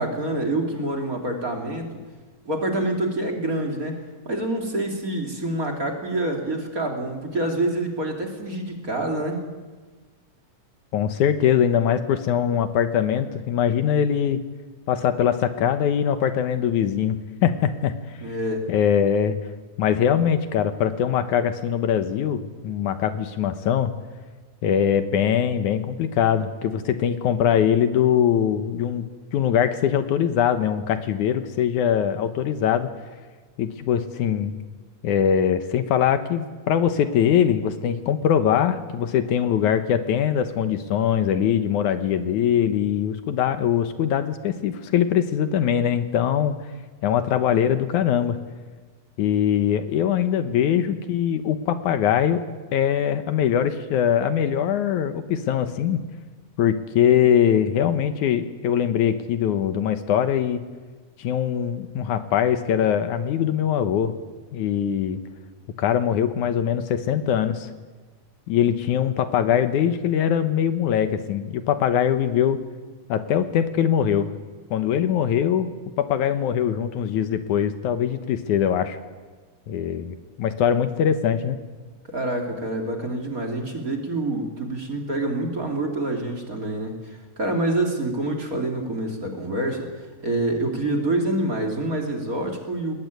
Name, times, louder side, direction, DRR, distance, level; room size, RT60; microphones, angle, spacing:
voice 1, 0.0-1.9 2.4-4.0 4.2-9.5 18.2-18.7 82.1-92.9, right 1 dB, 30° right, 2 dB, 2.9 m, -27 dB
voice 2, 10.9-14.4 14.9-17.9 18.7-19.4 19.8-23.9 24.6-32.9 33.6-34.6 35.0-46.6 47.0-48.4 49.2-52.4 52.7-56.0 56.6-60.6 61.2-64.1 64.5-65.2 65.8-67.7 68.5-72.6 73.1-74.3 74.7-75.7 76.0-79.0 79.7-81.6, left 9 dB, 75° left, 10 dB, 2.4 m, -22 dB
20.5 x 20.0 x 9.3 m, 1.3 s
omnidirectional pair, 3.6 m